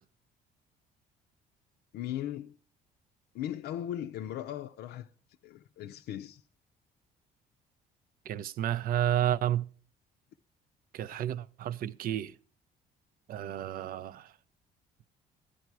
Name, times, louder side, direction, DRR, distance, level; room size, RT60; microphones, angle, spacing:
voice 1, 1.9-2.5 3.3-5.1 5.4-6.4, left 11 dB, 75° left, 0.5 m, -38 dB
voice 2, 8.3-9.7 10.9-12.3 13.3-14.3, right 11 dB, 60° right, 0.5 m, -31 dB
13.0 x 10.0 x 4.6 m
cardioid pair, 110°, 17 cm